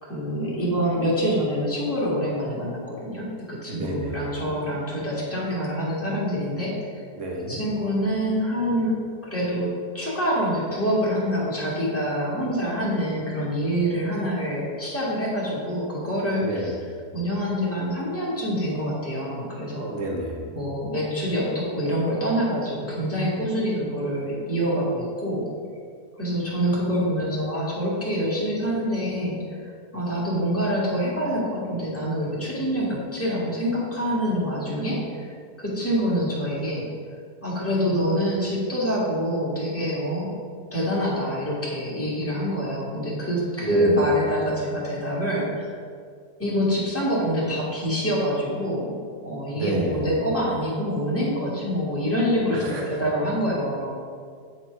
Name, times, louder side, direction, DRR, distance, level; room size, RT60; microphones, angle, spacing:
voice 1, 0.0-7.0 7.5-9.0 9.3-16.7 17.1-19.9 20.5-25.4 26.2-35.3 35.6-36.9 37.4-40.3 40.7-45.8 46.4-49.0 49.2-54.0, equal, 10° left, -7 dB, 1.8 m, -26 dB
voice 2, 3.7-4.3 7.2-7.6 16.4-16.8 19.9-20.5 43.6-44.1 49.5-50.1 52.5-53.0, right 1 dB, 55° right, 0 dB, 1.3 m, -30 dB
8.8 x 4.2 x 4.6 m, 2.1 s
omnidirectional pair, 1.7 m